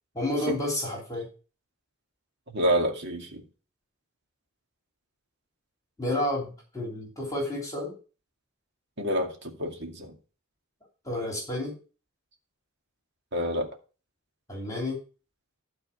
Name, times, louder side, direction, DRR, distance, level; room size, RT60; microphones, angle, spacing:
voice 1, 0.1-1.3 6.0-7.9 11.0-11.8 14.5-15.0, left 1 dB, 15° left, 3.0 m, -30 dB
voice 2, 2.5-3.4 9.0-10.1 13.3-13.7, equal, 55° right, 2.1 m, -28 dB
12.5 x 4.3 x 7.1 m
head